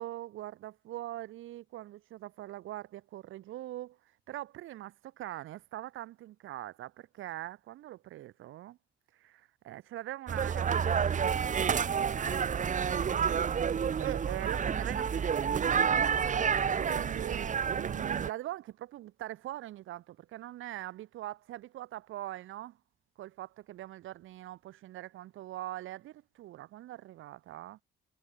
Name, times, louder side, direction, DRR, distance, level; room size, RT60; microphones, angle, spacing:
voice 1, 0.0-4.0 4.3-8.8 9.2-10.9 11.2-11.7 11.9-13.5 14.0-16.1 16.8-22.8 23.2-27.8, right 14 dB, 85° right, 2.5 m, -42 dB
sound 1, 10.3-18.3, right 7 dB, 40° right, 0.9 m, -29 dB
cardioid pair, 90°, 20 cm